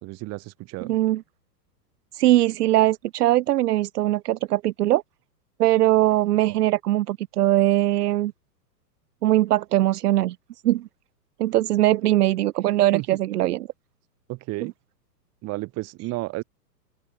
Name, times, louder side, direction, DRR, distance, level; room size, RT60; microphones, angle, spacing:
voice 1, 0.0-0.9 12.9-13.2 14.3-14.7 15.4-16.4, right 21 dB, 30° right, 2.2 m, -32 dB
voice 2, 0.8-1.2 2.1-5.0 5.6-8.3 9.2-10.4 10.6-10.9 11.4-13.7 14.6-14.7, right 15 dB, 70° right, 0.9 m, -21 dB
open air
hypercardioid pair, 140°, 49 cm